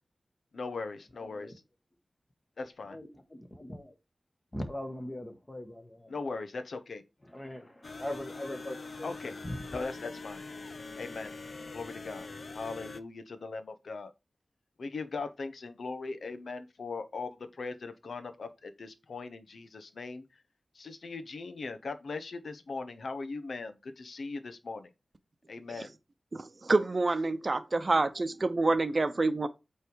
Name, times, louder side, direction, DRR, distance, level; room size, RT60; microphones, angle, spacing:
voice 1, 0.5-1.6 2.6-3.0 6.1-7.0 9.0-9.3 9.7-10.4 11.0-11.3 11.7-12.3 12.5-14.1 14.8-20.4 20.7-24.9 25.5-25.9, left 3 dB, 80° left, 0.9 m, -39 dB
voice 2, 1.2-1.5 2.9-3.9 4.5-6.1 7.2-9.1 9.4-9.6, left 1 dB, 20° left, 1.5 m, -40 dB
sound 1, 7.8-13.0, left 3 dB, 55° left, 0.6 m, -43 dB
voice 3, 26.3-29.5, right 3 dB, 40° right, 0.8 m, -27 dB
8.3 x 3.4 x 4.6 m
wide cardioid pair, 105°, 0 cm